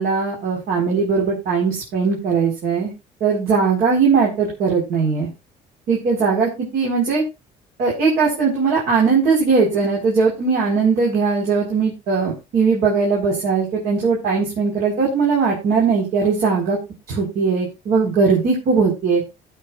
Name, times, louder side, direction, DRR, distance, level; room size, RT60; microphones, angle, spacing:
voice 1, 0.0-2.9 3.2-5.3 5.9-7.2 7.8-16.8 17.1-19.2, right 5 dB, 70° right, -3 dB, 4.7 m, -19 dB
19.5 x 7.4 x 2.6 m, 0.26 s
cardioid pair, 110°, 17 cm